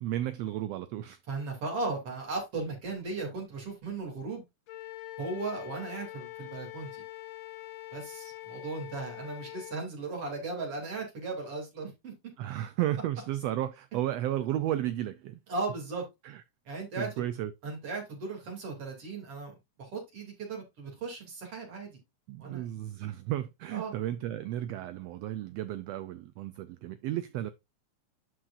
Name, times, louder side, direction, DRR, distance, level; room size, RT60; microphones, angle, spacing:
voice 1, 0.0-1.2 12.4-15.4 16.2-16.4 17.0-17.5 22.3-27.5, right 13 dB, 85° right, 1.4 m, -33 dB
voice 2, 1.3-4.4 5.2-7.0 7.9-12.1 15.5-16.1 16.7-17.2 17.6-22.0 22.4-22.6 23.7-23.9, right 3 dB, 50° right, 3.7 m, -37 dB
Wind instrument woodwind instrument, 4.7-9.8, left 17 dB, 70° left, 2.0 m, -44 dB
11.5 x 4.7 x 2.5 m
omnidirectional pair, 3.4 m